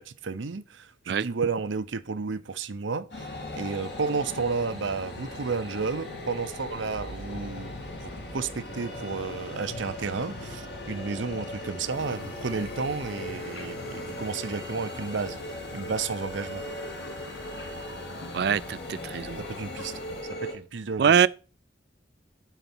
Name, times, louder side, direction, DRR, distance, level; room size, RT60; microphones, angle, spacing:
voice 1, 0.0-15.4 15.7-16.6 19.4-19.9 20.3-21.3, right 4 dB, 85° right, 0.7 m, -32 dB
sound 1, 3.1-20.5, left 1 dB, 65° left, 2.6 m, -38 dB
sound 2, 11.9-20.2, left 3 dB, 85° left, 1.1 m, -45 dB
voice 2, 18.3-19.4 21.0-21.3, right 7 dB, 55° right, 0.3 m, -23 dB
9.2 x 4.0 x 6.1 m
head